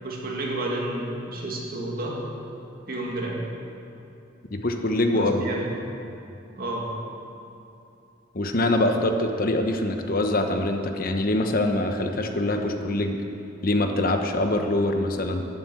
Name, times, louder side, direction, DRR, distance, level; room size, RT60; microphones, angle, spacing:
voice 1, 0.0-2.2 2.9-3.4 5.1-5.8 6.6-6.9, right 1 dB, 50° right, -2 dB, 2.3 m, -31 dB
voice 2, 4.5-5.5 8.3-13.2 13.6-15.5, left 1 dB, 50° left, 5 dB, 1.0 m, -24 dB
12.0 x 9.6 x 7.8 m, 2.8 s
head